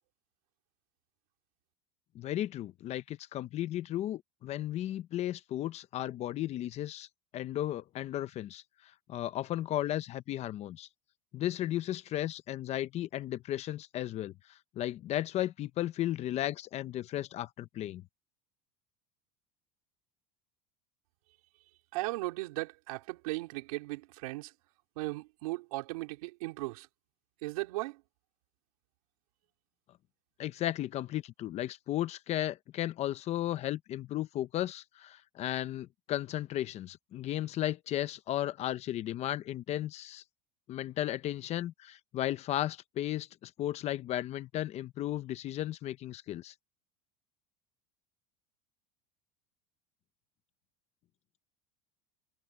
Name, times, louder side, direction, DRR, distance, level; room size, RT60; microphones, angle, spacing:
voice 1, 2.1-7.1 7.3-8.6 9.1-10.9 11.3-18.0 30.4-40.2 40.7-46.5, left 13 dB, 35° left, 0.8 m, -35 dB
voice 2, 21.9-24.5 25.0-26.9 27.4-28.0, right 22 dB, 85° right, 4.2 m, -37 dB
supercardioid pair, 145°, 18 cm